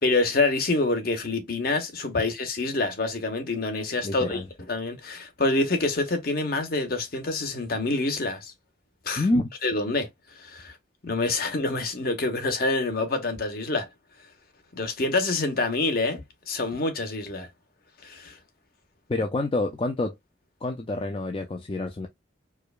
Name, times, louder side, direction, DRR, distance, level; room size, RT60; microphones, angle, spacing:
voice 1, 0.0-4.4 4.7-8.5 9.0-9.2 9.6-10.1 10.4-10.7 11.0-13.9 14.7-17.5 18.0-18.3, left 2 dB, 50° left, 1.0 m, -26 dB
voice 2, 4.0-4.5 9.2-9.5 19.1-20.1 20.6-22.1, left 2 dB, 30° left, 0.4 m, -27 dB
4.7 x 2.3 x 2.4 m
head